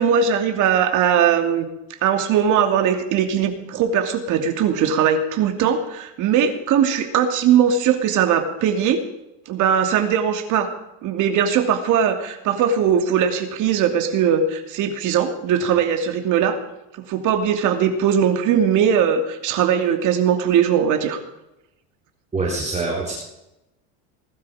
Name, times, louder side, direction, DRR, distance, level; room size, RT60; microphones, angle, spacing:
voice 1, 0.0-1.7 2.0-9.0 9.5-10.7 11.0-16.6 17.1-21.2, right 8 dB, 55° right, 6 dB, 2.8 m, -20 dB
voice 2, 22.3-23.1, right 3 dB, 20° right, -3 dB, 3.8 m, -24 dB
20.5 x 12.5 x 5.0 m, 0.91 s
cardioid pair, 130°, 36 cm